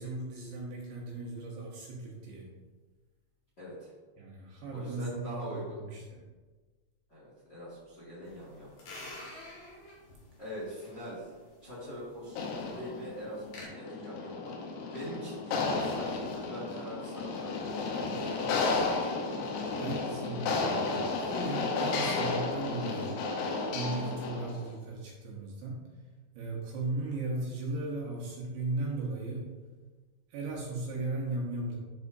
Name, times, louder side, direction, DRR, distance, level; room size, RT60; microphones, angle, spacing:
voice 1, 0.0-2.5 4.2-6.2 18.4-18.8 19.7-20.8 21.2-23.3 23.7-25.8 26.3-29.5 30.3-31.8, right 2 dB, 70° right, -3 dB, 3.0 m, -37 dB
voice 2, 3.6-3.9 4.7-5.8 7.1-8.7 10.4-11.3 11.6-12.4 12.7-14.5 14.9-17.7 20.0-20.6, equal, 35° left, -8 dB, 1.8 m, -42 dB
sound 1, 8.3-13.6, left 2 dB, 55° left, 3.6 m, -50 dB
sound 2, 12.3-24.7, left 3 dB, 80° left, 3.6 m, -33 dB
12.0 x 5.8 x 2.7 m, 1.3 s
omnidirectional pair, 5.9 m